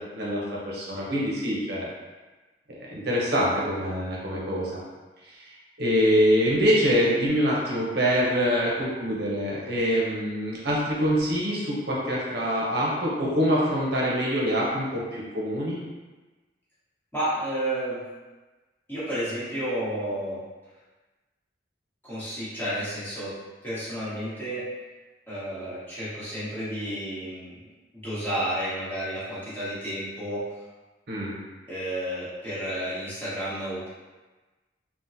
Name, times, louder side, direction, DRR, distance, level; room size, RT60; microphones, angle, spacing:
voice 1, 0.1-1.9 2.9-4.8 5.4-5.5 5.8-15.8 31.1-31.3, equal, 55° right, -5 dB, 0.6 m, -25 dB
voice 2, 17.1-18.0 18.9-20.4 22.0-23.4 23.6-24.7 25.3-27.5 27.9-30.5 31.7-33.9, right 1 dB, 10° left, -12 dB, 1.1 m, -31 dB
3.6 x 2.1 x 2.6 m, 1.2 s
head